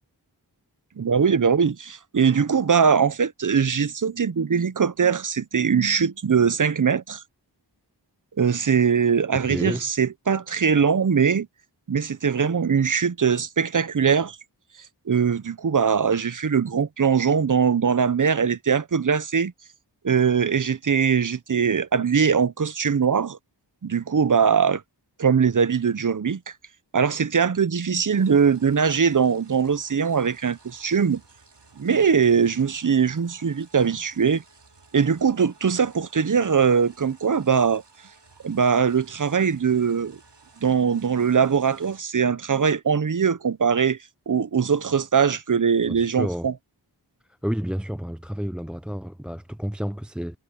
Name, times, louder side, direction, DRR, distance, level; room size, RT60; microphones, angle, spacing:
voice 1, 1.0-7.2 8.4-11.5 11.9-14.4 15.1-19.5 20.0-23.4 23.8-24.8 25.2-26.5 26.9-31.2 31.8-34.4 34.9-37.8 38.4-40.2 40.6-44.0 44.3-46.5, right 6 dB, 45° right, 0.7 m, -21 dB
voice 2, 9.3-9.9 45.9-46.5 47.4-50.4, equal, ahead, 0.4 m, -30 dB
sound 1, 28.1-42.0, right 4 dB, 75° right, 2.6 m, -55 dB
wide cardioid pair, 55°, 42 cm